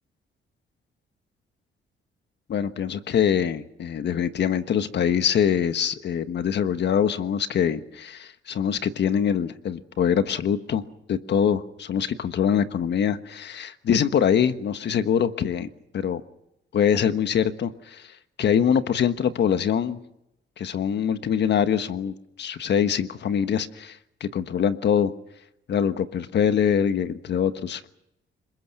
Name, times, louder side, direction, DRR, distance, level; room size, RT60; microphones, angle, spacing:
voice 1, 2.5-10.8 11.1-15.7 15.9-16.2 16.7-18.1 18.4-20.0 20.6-25.1 25.7-27.8, left 8 dB, 60° left, 10 dB, 1.4 m, -24 dB
30.0 x 21.0 x 6.0 m, 0.85 s
cardioid pair, 90°, 20 cm